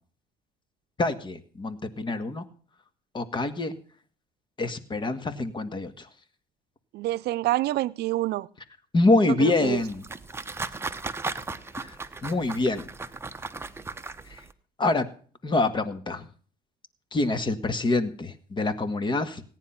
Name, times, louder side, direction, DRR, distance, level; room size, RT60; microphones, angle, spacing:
voice 1, 1.0-2.4 3.1-3.7 4.6-6.1 8.9-10.0 11.8-12.0 12.2-12.9 14.3-14.4 14.8-15.1 15.4-16.3 17.1-19.4, left 2 dB, 30° left, 1.8 m, -25 dB
voice 2, 6.9-8.5 9.2-9.8, right 16 dB, 75° right, 0.6 m, -27 dB
sound 1, 9.6-14.5, right 3 dB, 15° right, 1.0 m, -37 dB
17.5 x 9.8 x 5.8 m
cardioid pair, 110°, 17 cm